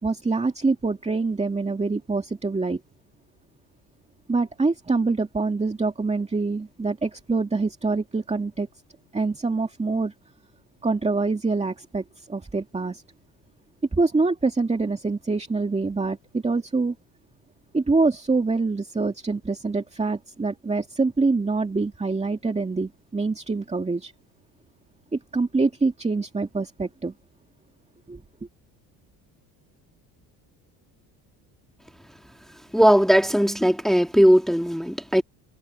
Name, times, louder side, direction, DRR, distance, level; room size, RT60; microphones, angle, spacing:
voice 1, 0.0-2.8 4.3-8.7 9.1-10.1 10.8-13.0 13.9-16.9 17.7-24.1 25.1-27.1 28.1-28.2, right 3 dB, 15° right, 2.3 m, -25 dB
voice 2, 32.7-35.2, equal, ahead, 2.0 m, -18 dB
cardioid pair, 100°, 40 cm